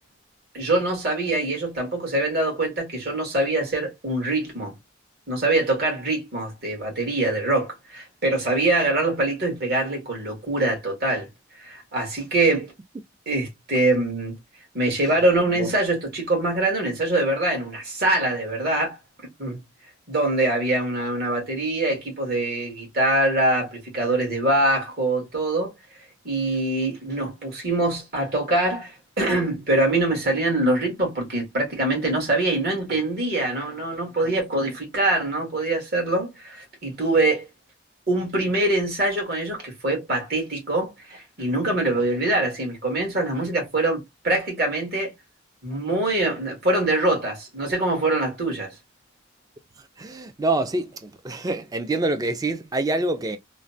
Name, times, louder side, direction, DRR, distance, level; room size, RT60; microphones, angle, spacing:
voice 1, 0.5-4.7 5.3-11.3 11.6-12.7 13.3-14.4 14.7-19.0 19.4-19.6 20.1-25.7 26.2-37.5 38.1-45.1 45.6-48.7, right 2 dB, 50° right, 1.5 m, -24 dB
voice 2, 50.0-53.4, right 2 dB, 20° right, 0.3 m, -26 dB
3.1 x 2.1 x 2.6 m
head